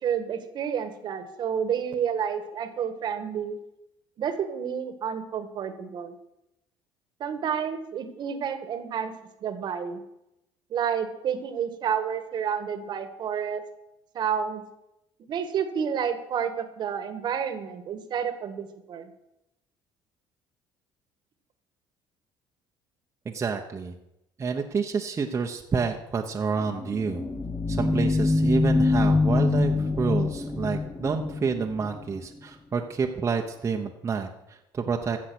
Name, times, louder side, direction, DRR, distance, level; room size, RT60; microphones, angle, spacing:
voice 1, 0.0-3.6 4.2-6.1 7.2-9.1 9.4-10.0 10.7-13.6 14.1-14.6 15.3-19.1, right 7 dB, 55° right, 9 dB, 1.5 m, -30 dB
voice 2, 23.2-23.9 24.4-27.2 27.7-35.2, right 5 dB, 30° right, 2 dB, 1.1 m, -29 dB
sound 1, 26.7-32.1, left 3 dB, 20° left, 0.9 m, -24 dB
14.5 x 7.3 x 6.2 m, 0.87 s
cardioid pair, 100°, 9 cm